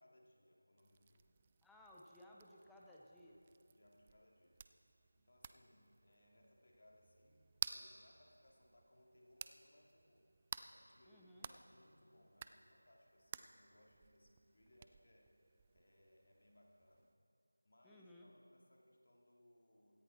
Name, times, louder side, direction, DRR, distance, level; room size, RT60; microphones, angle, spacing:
voice 1, 0.0-1.4 3.7-4.8 5.1-10.3 10.7-15.3 15.7-17.1 17.6-20.0, left 1 dB, 60° left, -1 dB, 3.0 m, -69 dB
sound 1, 0.8-17.1, right 6 dB, 20° right, 0.3 m, -54 dB
voice 2, 1.6-3.4 11.1-11.5 17.8-18.3, left 1 dB, ahead, -4 dB, 0.8 m, -60 dB
17.0 x 14.5 x 4.4 m, 2.7 s
figure-of-eight pair, 170°, 0 cm